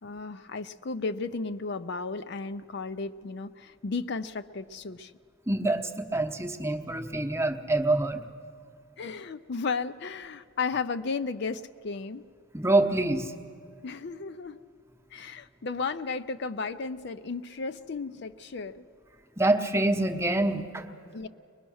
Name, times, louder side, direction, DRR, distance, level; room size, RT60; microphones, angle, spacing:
voice 1, 0.0-5.1 9.0-12.3 13.8-14.6 15.1-18.8 21.1-21.3, left 4 dB, 55° left, 11 dB, 0.5 m, -34 dB
voice 2, 5.5-8.2 12.5-13.3 19.4-20.8, right 2 dB, 15° right, 6 dB, 0.9 m, -26 dB
23.0 x 20.5 x 6.3 m, 2.5 s
head